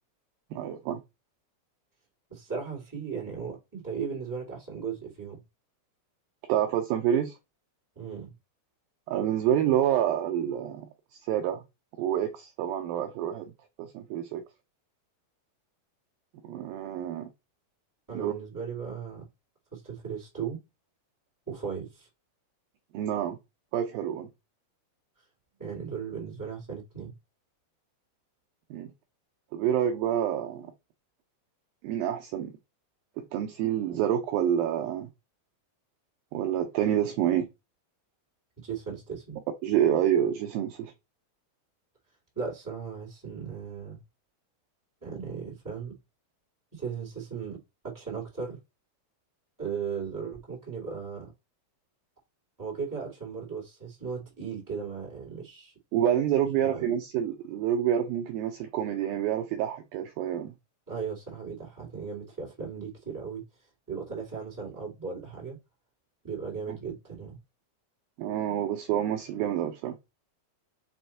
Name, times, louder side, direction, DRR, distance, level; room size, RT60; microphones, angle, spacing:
voice 1, 0.5-1.0 6.5-7.3 9.1-11.6 12.0-13.5 13.8-14.4 16.4-17.3 18.1-18.3 22.9-23.4 23.7-24.3 28.7-28.9 29.5-30.7 31.8-32.5 33.2-35.1 36.3-37.5 39.6-40.9 55.9-60.5 68.2-70.0, right 10 dB, 75° right, 2.2 m, -28 dB
voice 2, 2.3-5.4 7.9-8.3 18.1-19.3 19.7-20.6 21.5-22.1 25.6-27.1 38.6-39.4 42.3-44.0 45.0-46.0 46.7-48.6 49.6-51.3 52.6-55.7 56.6-56.9 60.9-63.4 63.9-65.6 66.2-67.4, right 6 dB, 5° right, 2.4 m, -37 dB
6.3 x 3.6 x 4.5 m
omnidirectional pair, 4.7 m